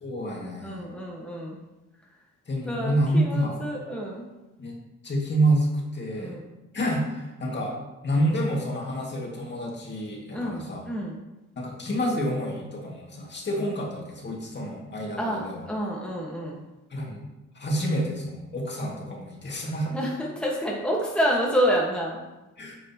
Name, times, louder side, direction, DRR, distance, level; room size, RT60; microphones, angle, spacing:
voice 1, 0.0-0.9 2.5-3.6 4.6-4.8 5.0-6.4 6.7-7.7 8.0-10.9 11.6-15.7 16.9-17.2 17.6-19.9 22.6-22.8, right 1 dB, 35° left, -2 dB, 2.3 m, -28 dB
voice 2, 0.6-1.6 2.7-4.2 6.2-6.5 10.3-11.2 15.2-16.6 19.9-22.2, equal, 5° left, -3 dB, 1.6 m, -28 dB
9.4 x 6.4 x 3.0 m, 1.0 s
cardioid pair, 90°, 30 cm